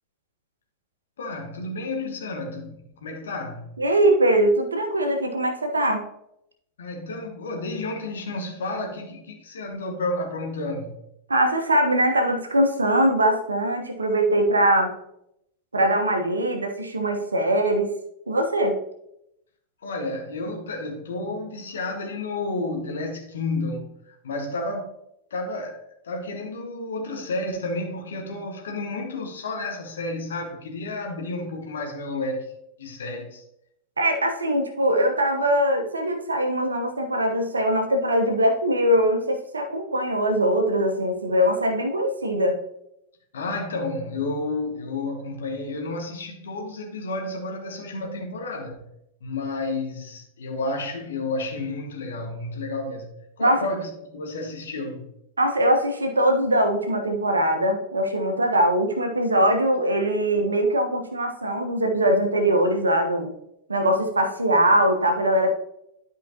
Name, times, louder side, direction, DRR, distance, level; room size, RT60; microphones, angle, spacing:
voice 1, 1.2-3.8 6.8-10.9 19.8-23.9 24.2-24.9 25.3-32.5 32.8-33.4 43.3-48.9 49.2-53.1 53.4-55.1, left 2 dB, 65° left, 1.6 m, -31 dB
voice 2, 3.8-6.0 11.3-15.0 15.7-17.9 18.3-18.8 34.0-42.6 53.4-53.6 55.4-63.3 63.7-65.5, right 1 dB, 75° right, 1.2 m, -22 dB
12.0 x 5.0 x 2.9 m
figure-of-eight pair, 90°, 0 cm